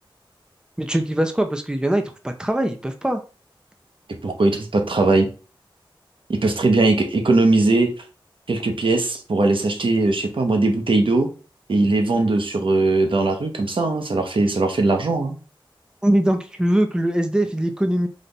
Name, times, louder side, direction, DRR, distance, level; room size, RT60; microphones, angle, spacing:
voice 1, 0.8-3.2 16.0-18.1, right 1 dB, 10° right, 6 dB, 0.7 m, -22 dB
voice 2, 4.2-5.3 6.3-7.9 8.5-11.3 11.7-15.4, right 2 dB, 70° right, 5 dB, 0.9 m, -19 dB
4.1 x 3.3 x 3.9 m, 0.36 s
wide cardioid pair, 55°, 9 cm